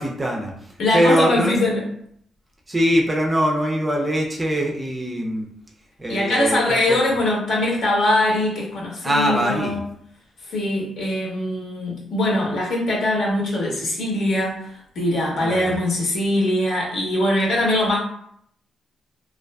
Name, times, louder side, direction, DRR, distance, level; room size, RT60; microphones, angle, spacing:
voice 1, 0.0-1.6 2.7-5.5 6.0-7.0 9.0-9.8 15.4-15.8, equal, 20° right, 0 dB, 0.4 m, -22 dB
voice 2, 0.8-1.8 6.1-9.8 10.5-14.6 14.9-18.0, left 1 dB, 65° left, -3 dB, 0.8 m, -22 dB
2.5 x 2.4 x 2.2 m, 0.69 s
cardioid pair, 135°, 0 cm